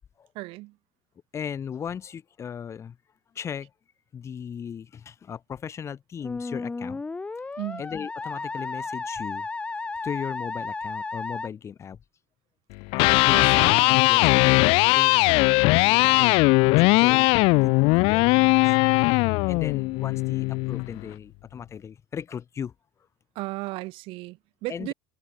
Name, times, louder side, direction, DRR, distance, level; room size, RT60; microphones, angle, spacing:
voice 1, 0.3-0.8 7.6-7.8 13.3-14.1 23.3-24.9, right 21 dB, 55° right, 6.6 m, -35 dB
voice 2, 1.3-3.0 3.3-3.7 4.1-7.0 7.8-9.5 10.0-12.0 13.0-13.5 14.1-16.3 16.8-18.8 19.5-22.7 24.7-24.9, left 7 dB, 25° left, 6.4 m, -37 dB
Musical instrument, 6.2-11.5, left 3 dB, 10° left, 1.0 m, -33 dB
Electric guitar, 12.8-20.9, left 26 dB, 60° left, 1.0 m, -19 dB
supercardioid pair, 140°, 11 cm